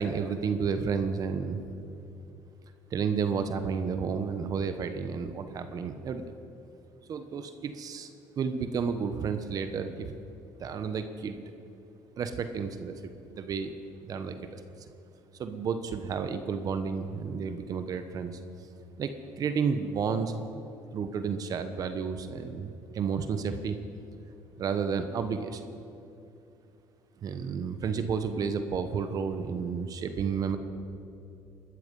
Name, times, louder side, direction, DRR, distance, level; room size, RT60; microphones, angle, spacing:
voice 1, 0.0-1.6 2.9-6.4 7.1-8.1 8.4-10.1 10.6-11.4 12.2-13.7 14.1-14.9 15.4-18.4 19.0-20.3 20.9-23.8 24.6-25.6 27.2-30.6, right 6 dB, 50° right, 9 dB, 1.1 m, -31 dB
20.5 x 13.0 x 5.5 m, 2.7 s
supercardioid pair, 90°, 8 cm